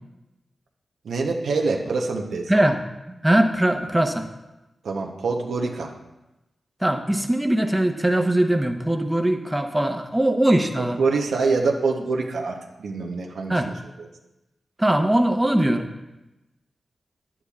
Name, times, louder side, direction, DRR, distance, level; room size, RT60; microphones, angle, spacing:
voice 1, 1.0-2.5 4.8-5.9 10.8-13.7 14.0-14.1, right 4 dB, 85° right, 1 dB, 0.8 m, -25 dB
voice 2, 3.2-4.3 6.8-11.0 13.5-13.7 14.8-15.8, right 1 dB, 10° right, 5 dB, 0.9 m, -21 dB
9.7 x 8.6 x 2.4 m, 0.99 s
cardioid pair, 45°, 0 cm